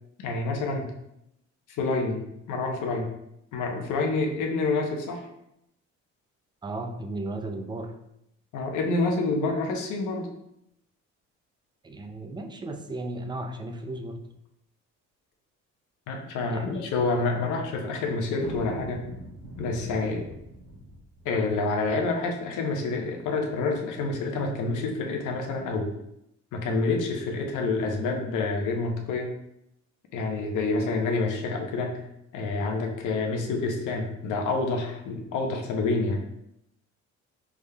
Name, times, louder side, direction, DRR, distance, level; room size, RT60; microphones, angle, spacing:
voice 1, 0.2-0.9 1.8-3.1 3.5-5.3 8.5-10.3 16.1-19.1 19.6-20.3 21.2-25.9 26.5-29.3 30.1-32.1 32.3-36.2, left 3 dB, 75° left, 2 dB, 0.8 m, -28 dB
voice 2, 6.6-8.0 11.8-14.2 16.5-16.8, right 2 dB, 15° right, 6 dB, 0.3 m, -35 dB
sound 1, 18.4-22.0, right 2 dB, 80° right, 1.1 m, -42 dB
5.1 x 3.5 x 2.2 m, 0.79 s
cardioid pair, 125°, 30 cm